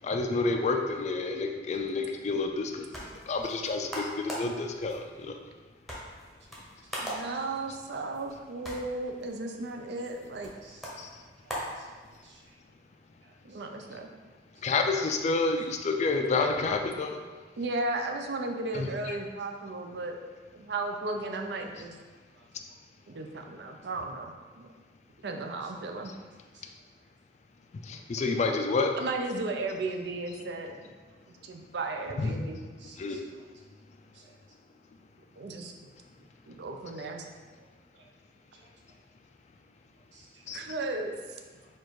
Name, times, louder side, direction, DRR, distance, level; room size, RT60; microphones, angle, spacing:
voice 1, 0.0-2.9 3.1-5.4 11.0-11.2 12.2-12.3 14.6-17.2 18.7-19.2 27.8-28.9 32.2-32.3 33.0-33.2 40.5-40.6, left 3 dB, 40° left, 4 dB, 0.4 m, -29 dB
sound 1, 2.5-12.5, equal, ahead, 0.8 m, -42 dB
voice 2, 7.0-10.5 13.4-14.1 17.6-20.2 20.5-22.0 23.1-24.7 25.2-26.1 29.0-30.9 31.3-32.6 35.4-35.7 36.5-37.3 40.5-41.4, right 2 dB, 65° right, 4 dB, 0.5 m, -35 dB
voice 3, 10.6-11.1 11.4-11.9 12.2-12.4 13.2-13.6 22.3-22.4 23.1-23.2 25.6-25.9 26.5-26.6 32.8-33.4 34.1-34.3 37.6-37.7 37.9-38.1 38.5-38.7 40.1-40.4 41.6-41.7, right 3 dB, 85° right, -2 dB, 0.9 m, -58 dB
4.4 x 2.5 x 4.6 m, 1.4 s
head